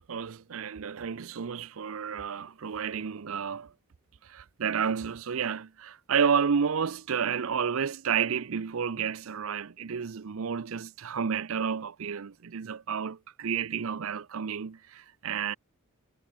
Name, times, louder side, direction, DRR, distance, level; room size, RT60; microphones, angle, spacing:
voice 1, 0.0-3.7 4.2-15.5, right 7 dB, 65° right, 0.5 m, -31 dB
head